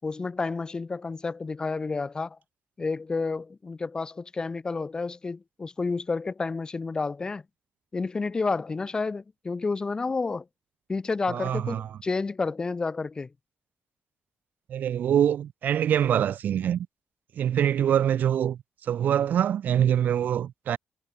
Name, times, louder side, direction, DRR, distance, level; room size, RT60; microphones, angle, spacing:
voice 1, 0.0-2.4 2.8-7.4 7.9-10.4 10.9-13.3, left 4 dB, 25° left, 1.4 m, -30 dB
voice 2, 11.3-11.9 14.7-16.9 17.4-20.8, right 9 dB, 70° right, 1.0 m, -24 dB
wide cardioid pair, 145°, 3 cm